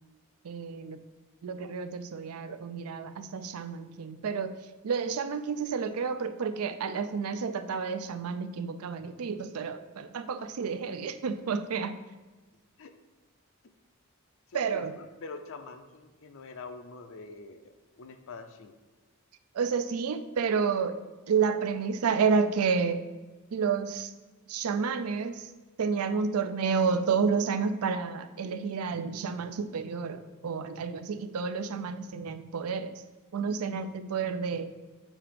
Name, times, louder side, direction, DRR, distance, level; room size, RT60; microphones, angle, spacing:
voice 1, 0.4-1.0 1.4-4.5 4.8-12.0 14.5-14.9 19.5-21.0 21.3-23.0 23.5-24.1 24.5-25.5 25.8-32.9 33.3-34.7, right 5 dB, 85° right, 10 dB, 0.4 m, -30 dB
voice 2, 14.5-18.8, left 4 dB, 65° left, 8 dB, 0.5 m, -45 dB
7.3 x 2.9 x 5.0 m, 1.2 s
head